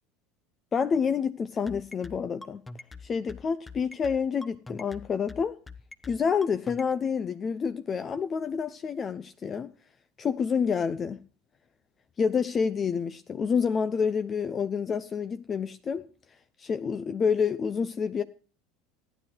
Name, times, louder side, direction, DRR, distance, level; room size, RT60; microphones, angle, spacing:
voice 1, 0.7-2.6 3.0-5.6 6.1-9.7 10.2-11.2 12.2-16.1 16.6-18.2, left 6 dB, 35° left, 0.7 m, -28 dB
sound 1, 1.7-6.9, left 3 dB, 15° left, 1.0 m, -44 dB
14.0 x 10.0 x 4.6 m
hypercardioid pair, 75°, 0 cm